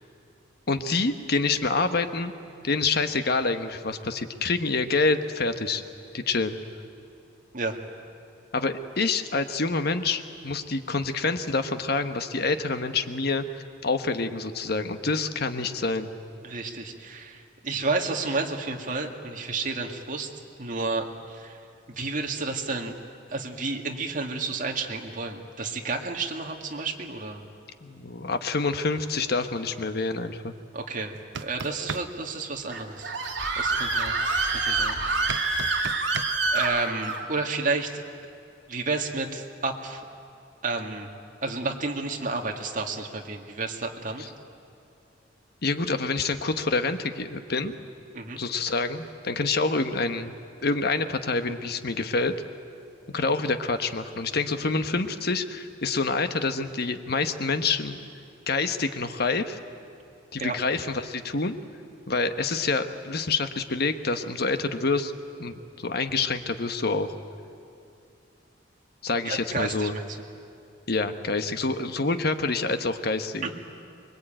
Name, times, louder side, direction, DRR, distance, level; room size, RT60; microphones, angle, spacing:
voice 1, 0.7-2.3 2.6-5.8 6.1-6.6 8.5-16.1 27.8-30.5 44.2-44.3 45.6-47.7 48.4-50.3 50.6-52.3 53.1-58.0 58.5-59.6 60.3-61.5 62.1-65.1 65.4-67.1 69.0-69.9 70.9-73.4, left 3 dB, 60° left, 9 dB, 1.2 m, -27 dB
voice 2, 16.4-20.3 20.6-21.6 21.9-23.0 23.3-27.4 30.7-31.2 31.4-33.1 33.6-34.1 34.4-35.0 35.5-35.9 36.5-38.0 38.7-40.0 40.6-41.1 41.4-44.2 48.1-48.4 60.4-60.5 69.3-70.0 73.4-73.5, right 3 dB, 45° right, 2 dB, 2.2 m, -31 dB
sound 1, 31.1-32.1 35.3-36.3, right 5 dB, 85° right, 0.8 m, -33 dB
Screaming, 32.7-37.2, right 3 dB, 70° right, 2.9 m, -26 dB
25.0 x 22.0 x 9.0 m, 2.5 s
head